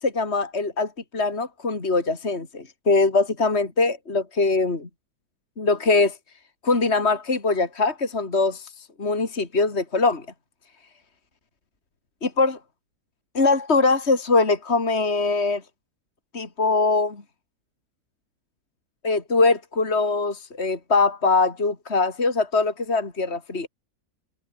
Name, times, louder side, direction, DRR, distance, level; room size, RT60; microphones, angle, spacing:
voice 1, 0.0-4.9 5.6-6.2 6.6-8.7 9.0-10.2 12.2-12.6 13.3-15.6 16.3-17.2 19.0-23.7, left 3 dB, 40° left, 3.3 m, -22 dB
omnidirectional pair, 1.7 m